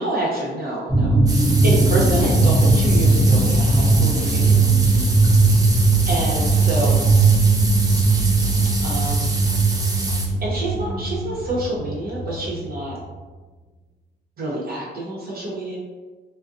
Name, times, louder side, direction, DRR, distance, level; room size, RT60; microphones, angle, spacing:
voice 1, 0.0-1.3 1.6-4.6 6.1-7.1 8.8-9.3 10.4-13.0 14.4-15.8, right 1 dB, 50° right, -4 dB, 0.9 m, -27 dB
sound 1, 0.9-12.9, right 3 dB, 5° left, 1.0 m, -18 dB
sound 2, 1.3-10.3, right 2 dB, 20° right, 0.5 m, -29 dB
2.4 x 2.2 x 2.5 m, 1.3 s
cardioid pair, 90°, 20 cm